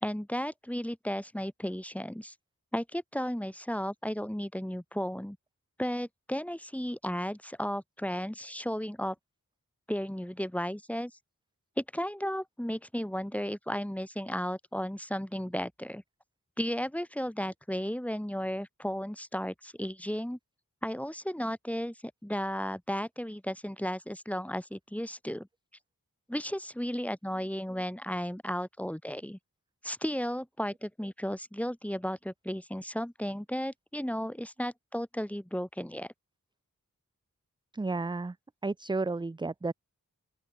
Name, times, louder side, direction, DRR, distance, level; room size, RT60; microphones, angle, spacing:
voice 1, 0.0-2.3 2.7-5.4 5.8-9.2 9.9-11.1 11.8-16.0 16.6-20.4 20.8-25.5 26.3-29.4 29.8-36.1, equal, 5° left, 2.1 m, -34 dB
voice 2, 37.7-38.4 38.6-39.7, right 3 dB, 15° right, 0.5 m, -32 dB
open air
wide cardioid pair, 55°, 34 cm